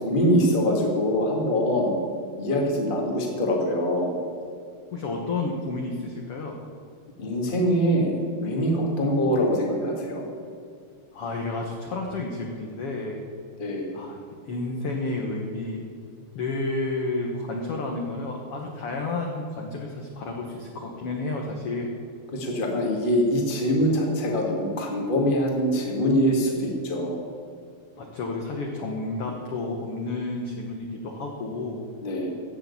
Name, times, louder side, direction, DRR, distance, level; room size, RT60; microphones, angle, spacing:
voice 1, 0.0-1.9 2.4-4.2 7.2-10.3 13.6-13.8 22.3-27.2 32.0-32.3, equal, 20° left, -1 dB, 1.5 m, -24 dB
voice 2, 4.9-6.6 11.1-13.2 13.9-14.2 14.5-15.8 16.3-21.9 28.0-31.8, left 2 dB, 60° left, 0 dB, 1.5 m, -31 dB
15.5 x 6.6 x 8.4 m, 2.3 s
omnidirectional pair, 4.2 m